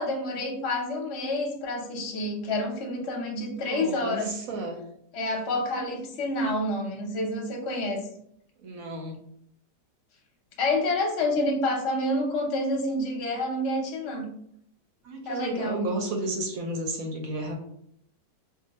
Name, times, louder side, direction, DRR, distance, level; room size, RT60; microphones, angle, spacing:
voice 1, 0.0-4.4 5.1-8.0 10.6-14.3 15.2-15.9, left 1 dB, 50° left, 0 dB, 0.9 m, -28 dB
voice 2, 3.6-4.2 4.5-4.8 8.6-9.2 15.0-17.5, right 2 dB, 65° right, 2 dB, 0.9 m, -32 dB
2.7 x 2.2 x 4.0 m, 0.69 s
omnidirectional pair, 1.8 m